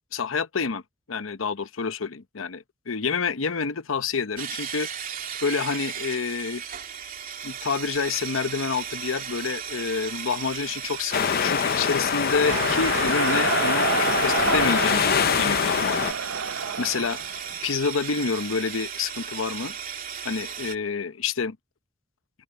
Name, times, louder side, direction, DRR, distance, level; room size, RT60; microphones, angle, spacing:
voice 1, 0.1-0.8 1.1-4.9 5.4-6.6 7.4-16.1 16.8-17.2 17.6-19.7 20.2-21.6, left 5 dB, 85° left, 0.8 m, -28 dB
sound 1, 4.4-20.8, right 8 dB, 45° right, 3.0 m, -35 dB
sound 2, 11.1-16.1, left 7 dB, 50° left, 0.5 m, -24 dB
sound 3, 12.4-17.6, right 5 dB, 70° right, 0.6 m, -28 dB
open air
head